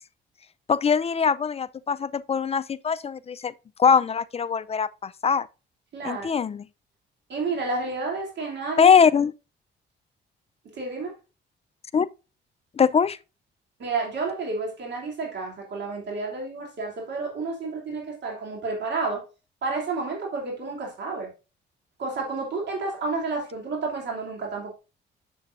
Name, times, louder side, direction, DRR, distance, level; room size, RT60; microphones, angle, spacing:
voice 1, 0.7-3.5 3.8-5.5 6.0-6.6 8.8-9.3 11.9-12.1 12.8-13.2, left 6 dB, 30° left, 0.4 m, -22 dB
voice 2, 5.9-6.3 7.3-8.9 10.7-11.2 13.8-19.2 19.6-21.3 22.0-24.7, right 3 dB, 60° right, 2.9 m, -30 dB
7.1 x 6.9 x 2.5 m
cardioid pair, 90°, 20 cm